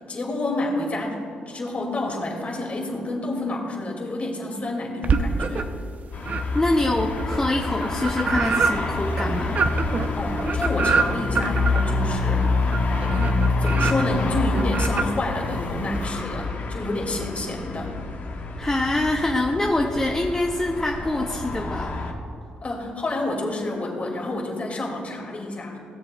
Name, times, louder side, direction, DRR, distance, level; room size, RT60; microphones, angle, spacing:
voice 1, 0.1-1.2 1.5-5.7 10.1-12.5 13.1-13.3 13.6-17.9 22.6-25.8, left 2 dB, 40° left, 0 dB, 2.3 m, -29 dB
sound 1, 5.0-5.8 6.2-16.0, right 4 dB, 50° right, 0.6 m, -27 dB
sound 2, 6.1-22.1, left 3 dB, 60° left, 1.3 m, -27 dB
voice 2, 6.5-9.6 18.6-21.9, left 2 dB, 20° left, 1 dB, 0.7 m, -24 dB
17.0 x 7.5 x 2.3 m, 2.7 s
cardioid pair, 80°, 4 cm